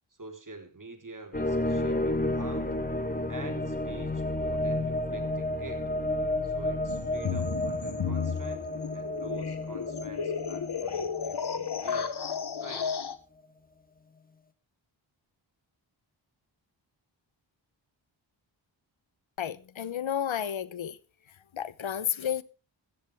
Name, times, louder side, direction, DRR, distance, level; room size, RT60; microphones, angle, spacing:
voice 1, 0.1-2.7 3.3-5.9 6.4-12.1 12.6-12.9, right 3 dB, 40° right, 4.1 m, -47 dB
sound 1, 1.3-12.3, left 1 dB, 20° left, 1.9 m, -31 dB
sound 2, 6.9-13.2, left 6 dB, 55° left, 1.4 m, -33 dB
voice 2, 19.4-21.0 21.3-22.4, left 9 dB, 75° left, 1.0 m, -32 dB
15.5 x 14.5 x 3.5 m
cardioid pair, 55°, 48 cm